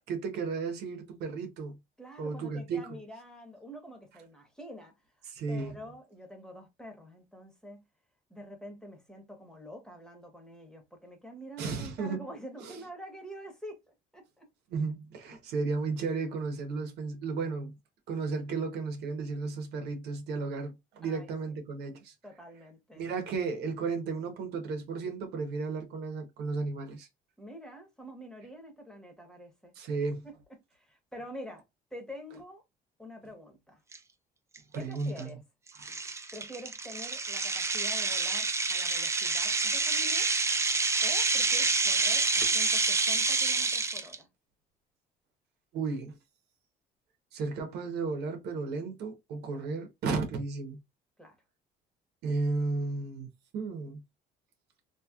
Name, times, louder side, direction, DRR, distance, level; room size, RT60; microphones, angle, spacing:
voice 1, 0.1-1.8 2.2-3.0 5.2-5.8 11.6-12.2 12.6-12.8 14.7-17.8 18.1-22.1 23.0-27.1 29.7-30.3 34.7-35.3 35.8-35.9 45.7-46.2 47.3-50.8 52.2-53.3 53.5-54.0, right 4 dB, 75° right, 1.1 m, -34 dB
voice 2, 2.0-4.9 5.5-7.8 8.3-13.8 14.1-14.5 21.0-21.3 22.2-23.1 27.4-29.7 30.2-30.3 30.7-31.6 31.9-32.6 33.0-33.8 34.7-35.4 36.3-40.3 41.0-44.3 49.5-49.7 51.2-51.4, equal, 5° left, 1.2 m, -46 dB
sound 1, 33.9-34.0 34.6-34.7 35.2-35.3 35.8-44.1, right 3 dB, 15° right, 0.4 m, -28 dB
3.0 x 2.9 x 2.4 m
cardioid pair, 110°, 17 cm